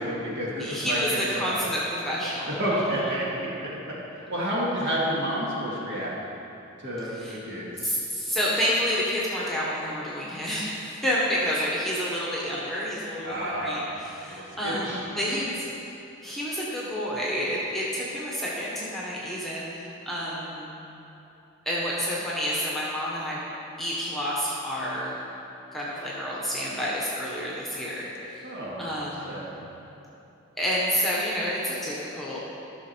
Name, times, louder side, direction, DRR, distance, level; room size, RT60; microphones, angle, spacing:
voice 1, 0.0-1.6 2.5-3.7 4.2-6.1 6.8-7.7 13.2-13.8 14.3-14.4 14.6-15.1 28.4-28.9 29.3-29.6, equal, 50° right, -6 dB, 2.1 m, -30 dB
voice 2, 0.6-3.1 7.1-7.4 7.8-15.6 16.2-20.7 21.6-23.4 23.8-25.2 25.7-28.5 28.8-29.5 30.6-32.4, equal, ahead, -6 dB, 1.2 m, -29 dB
13.5 x 6.1 x 4.5 m, 2.9 s
head